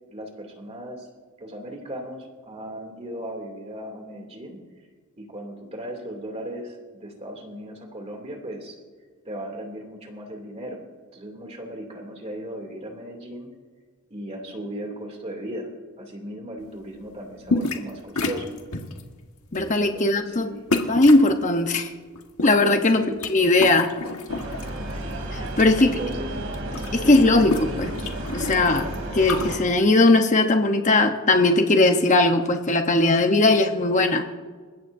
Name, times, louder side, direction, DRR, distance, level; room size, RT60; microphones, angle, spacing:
voice 1, 0.1-1.1 1.4-4.6 5.2-8.8 9.2-10.8 11.1-13.5 14.1-15.7 16.0-18.5 19.7-20.6 22.9-23.2 25.8-26.5 27.0-27.4, right 1 dB, 30° right, 2 dB, 2.7 m, -36 dB
sound 1, 17.5-17.9 18.2-19.0 19.5-19.8 20.7-21.3 22.2-23.3 23.6-24.7 25.1-25.8 26.1-26.2 26.4-29.5, left 3 dB, 75° left, 1.6 m, -29 dB
voice 2, 19.5-20.4 20.9-21.9 22.4-23.0 23.3-23.9 25.3-26.0 26.9-27.5 27.8-27.9 28.3-34.2, left 2 dB, 35° left, 5 dB, 0.9 m, -19 dB
sound 2, 24.3-29.6, right 1 dB, 65° right, 3.1 m, -32 dB
28.0 x 15.5 x 2.7 m, 1.5 s
head